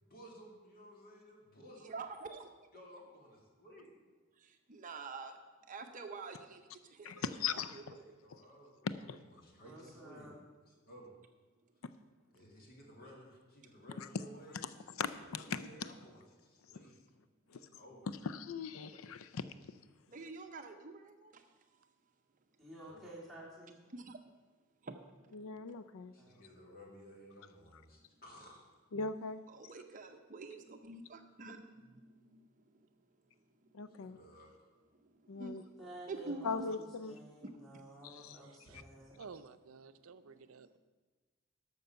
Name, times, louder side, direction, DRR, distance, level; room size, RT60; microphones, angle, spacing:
voice 1, 0.1-2.0 2.7-3.9 8.0-8.7 9.0-10.3 10.6-11.1 12.3-16.9 17.5-18.3 22.8-23.0 26.1-28.6 34.0-34.5 38.7-38.8, equal, 45° left, -1 dB, 2.3 m, -56 dB
voice 2, 1.8-2.5 4.4-5.4 5.7-6.6 7.0-8.0 20.1-21.4 23.9-24.2 24.8-25.2 29.5-32.5 33.8-34.1 35.3-35.8 36.1-36.7, right 3 dB, 40° right, 6 dB, 0.7 m, -47 dB
voice 3, 7.4-7.8 8.8-9.2 14.0-14.1 15.0-15.6 18.2-19.4 25.3-26.1 28.9-29.4 33.7-34.2 35.3-35.6 36.4-37.2 38.0-38.4, left 5 dB, 85° left, 13 dB, 0.5 m, -39 dB
voice 4, 9.6-10.4 22.6-23.8 26.2-26.4 35.8-39.2, right 1 dB, ahead, -7 dB, 2.8 m, -52 dB
voice 5, 38.5-38.8 39.2-40.8, right 5 dB, 85° right, 12 dB, 0.5 m, -53 dB
12.0 x 6.7 x 5.7 m, 1.3 s
head